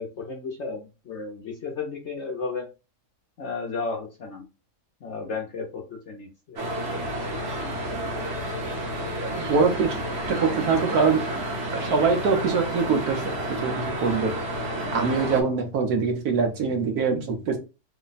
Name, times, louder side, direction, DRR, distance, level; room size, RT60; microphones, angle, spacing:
voice 1, 0.0-2.7 3.4-4.5 5.0-6.9, left 4 dB, 60° left, 0.8 m, -34 dB
sound 1, 6.6-15.4, right 1 dB, 45° right, 1.0 m, -30 dB
voice 2, 9.5-10.0 10.3-11.2 11.7-13.2 13.5-14.3 14.9-17.6, right 5 dB, 70° right, 1.3 m, -23 dB
3.3 x 2.1 x 3.9 m
omnidirectional pair, 1.8 m